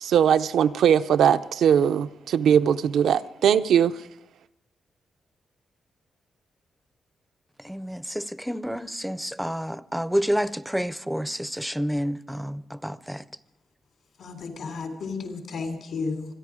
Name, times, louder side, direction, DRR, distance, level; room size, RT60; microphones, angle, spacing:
voice 1, 0.0-4.0, right 8 dB, 85° right, 0.5 m, -20 dB
voice 2, 7.6-13.2, equal, ahead, 0.5 m, -29 dB
voice 3, 14.2-16.3, left 4 dB, 70° left, 3.4 m, -33 dB
26.5 x 10.5 x 4.9 m
cardioid pair, 125°, 0 cm